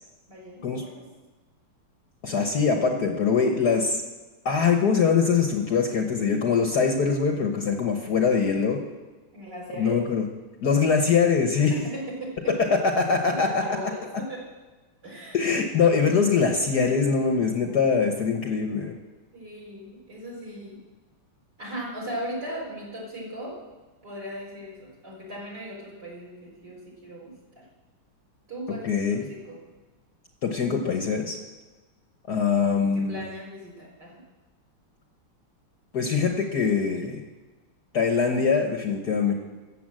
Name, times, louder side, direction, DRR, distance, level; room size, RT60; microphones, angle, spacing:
voice 1, 0.3-1.0 9.3-10.0 11.7-12.7 13.3-14.4 15.0-15.4 19.3-20.8 21.6-23.6 24.0-27.6 28.5-29.6 32.9-34.1, right 1 dB, 50° right, -4 dB, 5.0 m, -38 dB
voice 2, 2.2-4.0 4.4-8.8 9.8-10.2 10.6-11.7 12.7-13.6 15.3-18.9 28.8-29.2 30.4-31.4 32.3-33.2 35.9-37.2 37.9-39.3, left 5 dB, 55° left, 3 dB, 1.4 m, -23 dB
14.0 x 8.0 x 7.6 m, 1.2 s
omnidirectional pair, 2.4 m